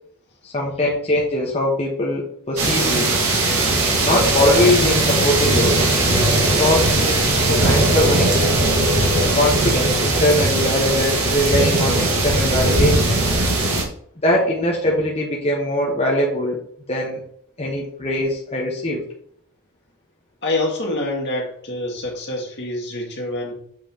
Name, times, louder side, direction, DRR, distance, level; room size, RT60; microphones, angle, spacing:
voice 1, 0.4-3.1 3.7-5.9 6.3-8.3 9.3-13.2 14.2-16.6 16.9-17.2 17.6-19.0, left 1 dB, 30° left, -3 dB, 1.0 m, -21 dB
sound 1, 2.6-13.8, right 2 dB, 75° right, 1.6 m, -19 dB
voice 2, 20.4-23.5, left 2 dB, 50° left, -1 dB, 2.0 m, -26 dB
7.5 x 5.6 x 2.8 m, 0.64 s
head